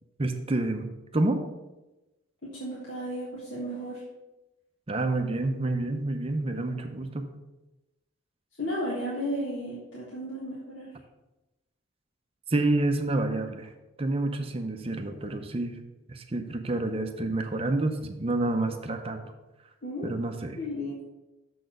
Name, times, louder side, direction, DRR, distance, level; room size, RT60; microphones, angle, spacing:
voice 1, 0.2-1.4 4.9-7.3 12.5-13.7 14.0-15.8 16.1-19.2 20.0-20.6, right 2 dB, 30° right, 6 dB, 0.6 m, -28 dB
voice 2, 2.4-4.0 8.6-10.9 19.8-20.1 20.6-21.1, equal, 65° left, -7 dB, 1.7 m, -34 dB
6.7 x 4.3 x 6.2 m, 1.0 s
head